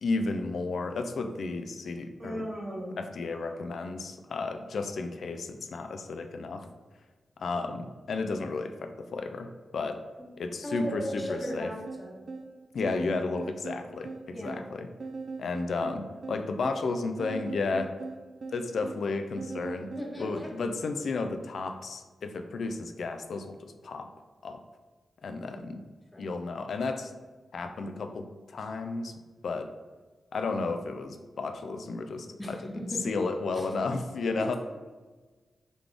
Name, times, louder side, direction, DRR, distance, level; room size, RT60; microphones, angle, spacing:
voice 1, 0.0-2.5 3.0-6.7 7.4-10.0 10.4-11.7 12.7-14.9 15.4-18.0 18.5-19.9 20.2-24.1 24.4-24.6 25.2-25.8 26.2-27.1 27.5-29.7 30.3-34.6, left 3 dB, 75° left, 7 dB, 0.4 m, -33 dB
Human voice, 2.2-3.9, equal, 35° right, 1.1 m, -39 dB
voice 2, 10.6-12.1 14.3-14.6 20.0-20.5 25.5-25.6 26.1-26.4 32.4-33.1 33.5-33.7 34.4-34.6, equal, 20° left, -1 dB, 1.1 m, -37 dB
sound 1, 11.5-20.2, right 4 dB, 60° right, 0.5 m, -41 dB
3.9 x 3.3 x 3.5 m, 1.3 s
cardioid pair, 55°, 0 cm